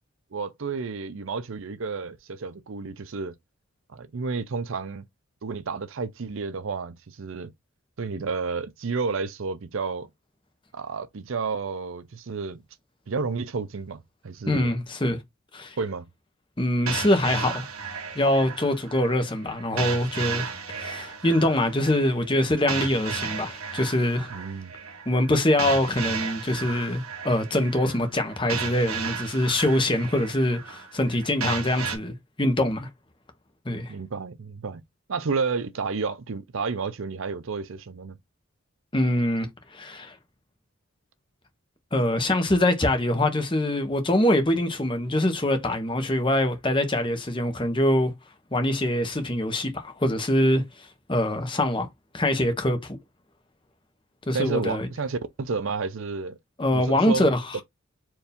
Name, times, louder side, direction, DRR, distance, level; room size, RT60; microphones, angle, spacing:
voice 1, 0.3-3.3 3.9-5.0 5.4-7.5 8.0-10.1 10.7-12.6 13.1-14.7 15.8-16.1 24.3-24.7 33.9-34.8 35.1-38.2 54.3-56.4 56.7-57.3 57.5-57.6, right 4 dB, 65° right, 0.5 m, -31 dB
voice 2, 14.5-15.2 15.5-15.8 16.6-17.6 18.1-24.3 25.1-32.9 33.6-33.9 38.9-40.2 41.9-48.1 48.5-51.9 52.1-53.0 54.3-54.9 56.6-57.6, left 1 dB, 20° left, 0.9 m, -24 dB
sound 1, 16.9-32.0, right 6 dB, 85° right, 1.4 m, -34 dB
4.5 x 2.7 x 3.4 m
head